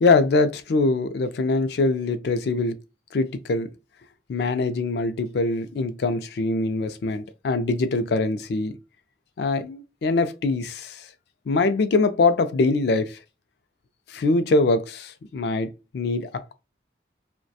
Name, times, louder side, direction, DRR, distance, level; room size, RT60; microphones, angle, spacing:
voice 1, 0.0-2.7 3.1-3.7 4.3-8.7 9.4-11.0 11.5-13.2 14.1-16.5, left 3 dB, 65° left, 0.3 m, -23 dB
2.7 x 2.1 x 2.3 m
head